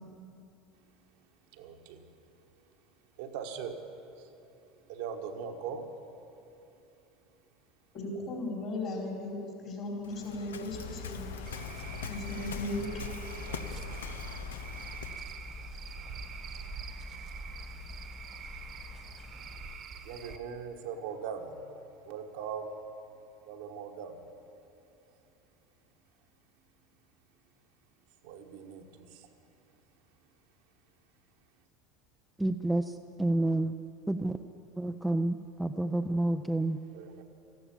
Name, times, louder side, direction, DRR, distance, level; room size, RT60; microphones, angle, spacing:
voice 1, 1.5-2.0 3.2-3.8 4.2-4.3 4.9-5.9 13.4-13.9 20.0-22.8 23.2-24.2 28.2-29.3 36.9-37.2, right 6 dB, 65° right, 4 dB, 1.2 m, -41 dB
voice 2, 7.9-11.3 12.1-12.9, left 2 dB, 50° left, 0 dB, 4.3 m, -37 dB
Waves surf, 10.0-15.3, left 6 dB, 80° left, 0.6 m, -42 dB
sound 1, 10.7-19.8, left 3 dB, 30° left, 2.3 m, -45 dB
Cricket / Frog, 11.4-20.4, right 7 dB, 45° right, 1.2 m, -46 dB
voice 3, 32.4-33.7 34.1-34.4 34.8-36.8, right 1 dB, 5° right, 6 dB, 0.5 m, -29 dB
14.0 x 12.5 x 7.3 m, 2.8 s
hypercardioid pair, 75°, 0 cm